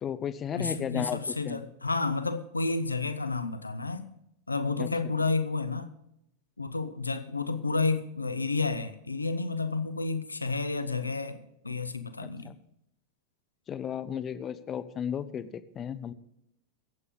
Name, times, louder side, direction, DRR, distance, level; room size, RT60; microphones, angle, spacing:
voice 1, 0.0-1.6 4.8-4.9 12.2-12.5 13.7-16.1, left 8 dB, 25° left, 0.8 m, -34 dB
voice 2, 0.5-4.1 4.5-5.9 6.6-12.5, left 3 dB, 80° left, 1.0 m, -31 dB
23.0 x 8.3 x 3.7 m
figure-of-eight pair, 90°, 0 cm